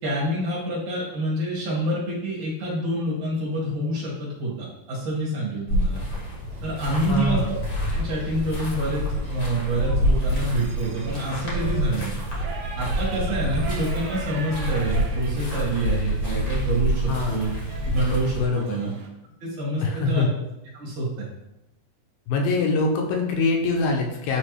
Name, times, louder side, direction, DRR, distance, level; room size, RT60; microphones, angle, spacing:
voice 1, 0.0-6.0 6.6-7.4 7.9-12.2 12.8-17.6 17.8-18.4 18.7-18.9 19.4-20.3 20.7-21.3, right 1 dB, 55° right, -6 dB, 3.0 m, -27 dB
sound 1, 5.7-18.4, equal, 45° left, 1.1 m, -27 dB
Shout / Livestock farm animals working animals, 6.5-19.1, right 4 dB, 85° right, 2.9 m, -43 dB
voice 2, 7.1-7.6 17.1-17.5 18.4-18.8 19.8-20.3 22.3-24.4, left 3 dB, 80° left, 1 dB, 2.4 m, -24 dB
9.8 x 3.3 x 3.2 m, 0.91 s
omnidirectional pair, 4.3 m